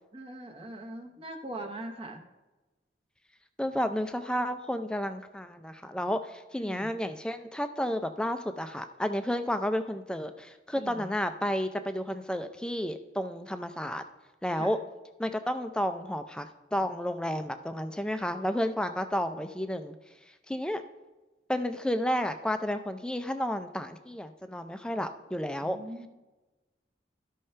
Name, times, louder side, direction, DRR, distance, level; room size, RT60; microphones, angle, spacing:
voice 1, 0.1-2.2 6.6-6.9 10.7-11.1 14.5-14.7 25.6-26.1, right 1 dB, 30° right, 2 dB, 0.8 m, -41 dB
voice 2, 3.6-14.0 14.4-14.8 15.2-20.0 20.5-20.8 21.5-25.8, equal, 5° left, 8 dB, 0.4 m, -31 dB
13.5 x 5.5 x 3.3 m, 1.1 s
head